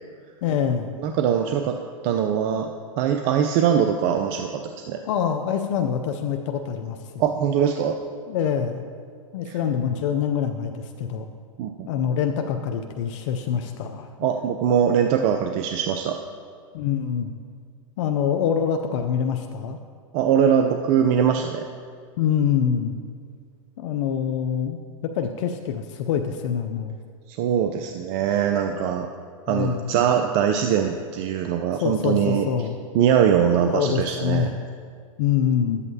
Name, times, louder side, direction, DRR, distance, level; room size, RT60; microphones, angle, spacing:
voice 1, 0.4-0.9 5.0-7.2 8.3-8.8 9.3-11.3 11.8-14.3 16.7-17.3 18.0-19.8 22.2-23.0 23.8-26.9 29.5-29.9 31.8-32.7 33.7-34.5 35.2-35.8, left 8 dB, 60° left, 6 dB, 0.5 m, -25 dB
voice 2, 1.0-1.8 2.0-2.7 3.0-5.0 7.2-8.0 9.5-9.6 11.6-11.9 14.2-16.2 20.1-21.7 27.3-29.1 29.5-32.5 32.9-34.5, right 8 dB, 45° right, 5 dB, 0.5 m, -22 dB
11.5 x 8.2 x 2.8 m, 2.1 s
hypercardioid pair, 110°, 18 cm